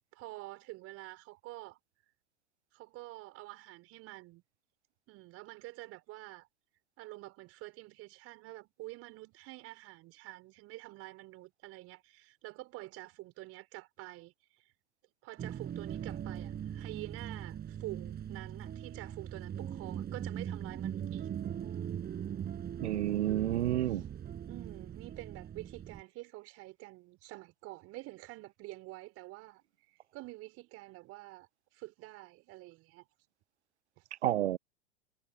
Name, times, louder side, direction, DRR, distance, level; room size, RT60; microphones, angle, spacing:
voice 1, 0.0-1.8 2.7-4.4 5.1-6.5 7.0-14.7 15.2-21.3 23.9-24.0 24.5-29.6 29.9-33.1 34.0-34.1, right 20 dB, 45° right, 4.8 m, -48 dB
sound 1, 15.4-26.0, right 9 dB, 30° right, 7.7 m, -40 dB
voice 2, 22.8-24.0 34.2-34.6, right 12 dB, 75° right, 0.5 m, -30 dB
figure-of-eight pair, 95°, 34 cm